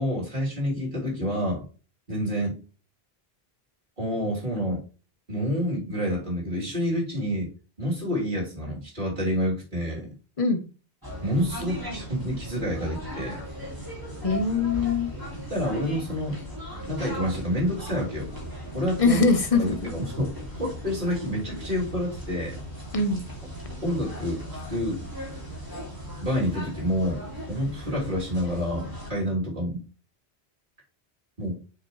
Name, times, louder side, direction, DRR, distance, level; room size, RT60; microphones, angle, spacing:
voice 1, 0.0-1.6 2.1-2.6 4.0-4.8 5.3-7.5 7.8-10.1 11.2-13.4 15.5-16.4 16.9-18.3 18.7-19.2 19.6-20.3 20.6-22.6 23.8-25.0 26.2-29.8 31.4-31.6, equal, 50° right, -4 dB, 3.3 m, -28 dB
sound 1, 11.0-29.1, equal, 20° right, 2.4 m, -38 dB
voice 2, 14.2-15.1 19.0-19.8 22.9-23.2, left 4 dB, 35° left, 7 dB, 1.0 m, -22 dB
7.4 x 6.1 x 3.1 m, 0.35 s
omnidirectional pair, 1.1 m